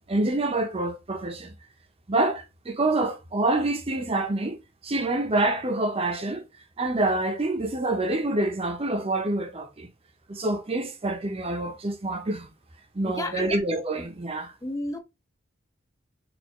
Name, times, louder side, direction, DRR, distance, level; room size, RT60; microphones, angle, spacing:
voice 1, 0.1-1.5 2.1-6.5 6.8-9.9 10.3-12.5 12.9-14.5, right 2 dB, 30° right, 0.6 m, -27 dB
voice 2, 13.0-13.5 14.6-15.0, left 2 dB, 15° left, 0.3 m, -31 dB
4.3 x 2.4 x 2.9 m
head